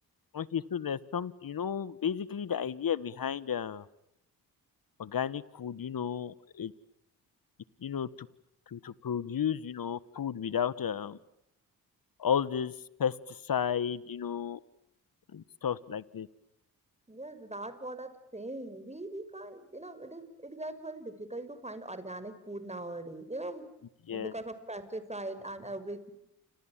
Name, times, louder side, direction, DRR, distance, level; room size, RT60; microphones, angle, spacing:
voice 1, 0.3-3.8 5.0-6.7 7.8-8.3 8.7-11.2 12.2-12.7 13.0-14.6 15.3-16.3 24.1-24.3, left 8 dB, 60° left, 18 dB, 1.6 m, -33 dB
voice 2, 17.1-23.7 24.1-26.1, right 2 dB, 15° right, 12 dB, 5.9 m, -41 dB
29.5 x 26.5 x 7.5 m, 0.81 s
supercardioid pair, 50°, 39 cm